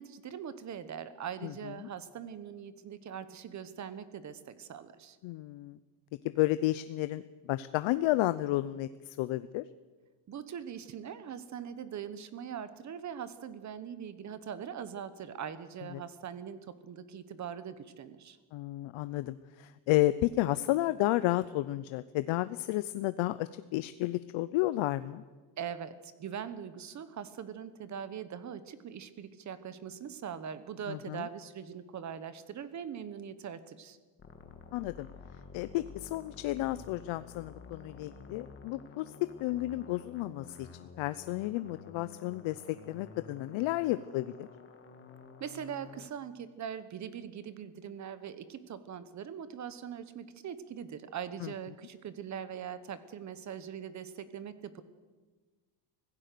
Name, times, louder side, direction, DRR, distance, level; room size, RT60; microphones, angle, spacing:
voice 1, 0.0-5.2 10.3-18.4 25.6-34.0 45.4-54.8, right 8 dB, 35° right, 13 dB, 1.1 m, -42 dB
voice 2, 5.2-5.8 6.2-7.2 7.5-9.6 15.9-16.0 18.5-25.2 30.9-31.3 34.7-35.1 35.5-39.1 39.4-40.7 41.0-44.5 51.4-51.5, left 16 dB, 70° left, 14 dB, 0.7 m, -32 dB
sound 1, 34.2-46.1, left 5 dB, 25° left, 1.7 m, -51 dB
25.0 x 16.0 x 6.8 m, 1.3 s
cardioid pair, 170°, 50 cm